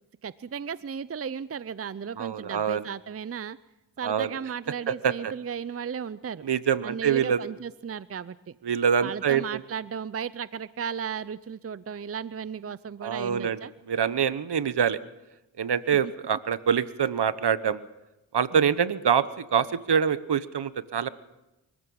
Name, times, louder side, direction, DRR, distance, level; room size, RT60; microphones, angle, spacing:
voice 1, 0.2-3.6 4.0-6.5 6.8-8.5 9.0-13.7 15.9-16.1 18.5-18.7, right 7 dB, 30° right, 17 dB, 0.6 m, -35 dB
voice 2, 2.2-2.8 4.0-4.3 4.9-5.3 6.4-7.4 8.6-9.6 13.0-13.6 13.9-15.0 15.6-17.8 18.3-21.1, right 7 dB, 60° right, 15 dB, 1.2 m, -25 dB
24.5 x 15.0 x 7.2 m, 0.98 s
cardioid pair, 50°, 46 cm